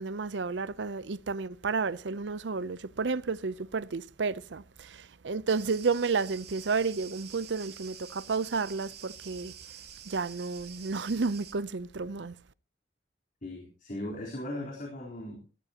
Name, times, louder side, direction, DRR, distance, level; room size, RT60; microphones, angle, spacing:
voice 1, 0.0-9.5 10.1-12.3, right 4 dB, 80° right, 0.7 m, -31 dB
Cricket, 5.5-11.5, right 9 dB, 65° right, 2.9 m, -48 dB
voice 2, 13.4-15.5, left 1 dB, 50° left, 4.0 m, -38 dB
21.0 x 14.0 x 2.9 m
head